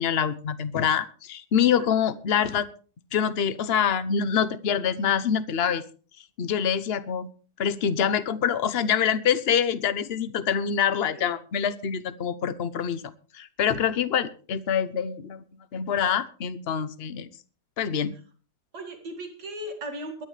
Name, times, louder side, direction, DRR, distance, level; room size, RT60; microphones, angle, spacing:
voice 1, 0.0-2.7 3.1-5.8 6.4-7.3 7.6-13.0 13.3-15.4 15.7-17.3 17.8-18.1, left 8 dB, 45° left, 14 dB, 0.9 m, -25 dB
voice 2, 18.7-20.3, right 1 dB, 70° right, 3 dB, 2.7 m, -37 dB
22.5 x 10.0 x 3.3 m, 0.38 s
omnidirectional pair, 1.8 m